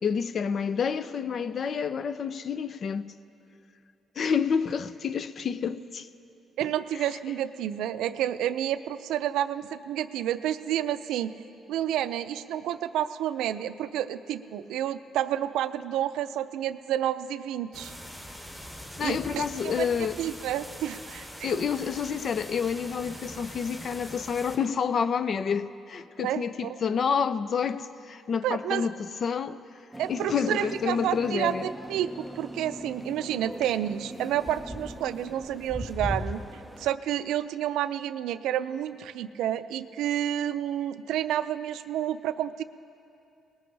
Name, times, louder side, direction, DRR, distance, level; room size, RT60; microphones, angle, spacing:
voice 1, 0.0-3.1 4.2-6.1 19.0-20.2 21.4-29.6 30.1-31.7, left 6 dB, 55° left, 0.5 m, -29 dB
voice 2, 6.6-11.3 11.7-17.9 19.0-19.9 20.2-21.6 26.2-26.8 28.4-28.9 30.0-36.4 36.8-42.6, right 11 dB, 85° right, 0.4 m, -30 dB
sound 1, 17.7-24.6, equal, 20° left, 2.9 m, -43 dB
sound 2, 29.9-36.9, equal, ahead, 0.5 m, -39 dB
19.5 x 17.0 x 3.3 m
cardioid pair, 90°, 0 cm